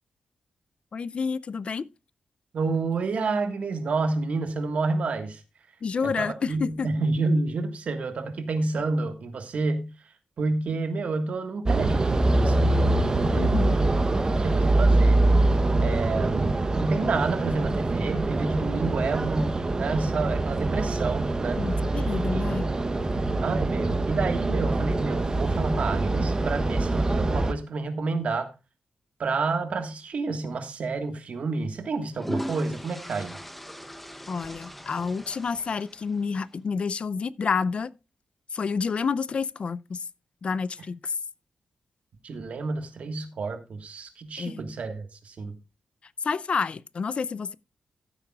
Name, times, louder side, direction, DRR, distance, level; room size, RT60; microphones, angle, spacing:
voice 1, 0.9-1.9 5.8-6.9 13.4-13.8 21.6-22.7 34.3-37.9 38.5-40.0 40.4-41.1 44.4-44.6 46.2-47.6, left 5 dB, 50° left, 0.4 m, -29 dB
voice 2, 2.5-5.4 6.0-9.9 10.4-13.0 13.3-14.0 14.4-15.3 15.8-21.7 22.3-22.9 23.4-28.5 29.2-33.4 42.2-45.5, right 3 dB, 65° right, 1.6 m, -29 dB
sound 1, 11.7-27.5, right 2 dB, 30° right, 0.8 m, -24 dB
sound 2, 30.5-30.7 31.8-36.4, equal, 5° left, 0.8 m, -39 dB
15.0 x 8.1 x 2.4 m
cardioid pair, 100°, 3 cm